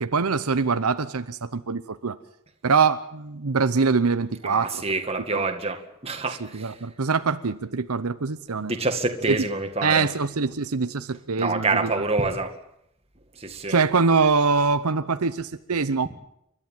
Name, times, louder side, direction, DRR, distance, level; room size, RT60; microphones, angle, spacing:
voice 1, 0.0-2.2 2.6-4.8 5.3-5.5 6.4-8.7 9.3-9.4 9.8-11.9 13.7-16.1, right 4 dB, 80° right, 11 dB, 0.8 m, -24 dB
voice 2, 4.4-6.8 8.6-10.1 11.4-12.5 13.4-13.8, right 3 dB, 25° right, 5 dB, 2.0 m, -27 dB
29.5 x 12.5 x 9.1 m, 0.79 s
head